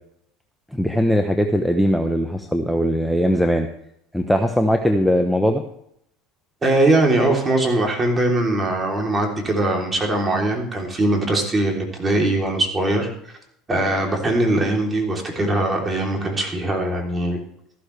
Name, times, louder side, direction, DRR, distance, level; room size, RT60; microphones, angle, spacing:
voice 1, 0.7-3.7 4.1-5.6, equal, 5° left, 5 dB, 1.0 m, -20 dB
voice 2, 6.6-13.1 13.7-17.4, right 2 dB, 25° right, 1 dB, 3.4 m, -21 dB
14.0 x 12.5 x 3.4 m, 0.72 s
supercardioid pair, 95°, 0 cm